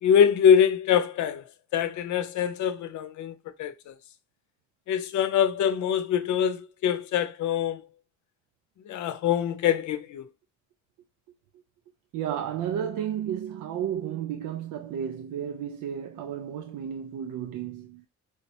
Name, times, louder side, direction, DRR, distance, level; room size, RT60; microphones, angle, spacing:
voice 1, 0.0-1.4 1.7-3.9 4.9-7.8 8.9-10.2, left 8 dB, 70° left, 0.6 m, -24 dB
voice 2, 12.1-18.1, right 9 dB, 80° right, 0.5 m, -32 dB
4.9 x 2.0 x 2.8 m
cardioid pair, 90°, 30 cm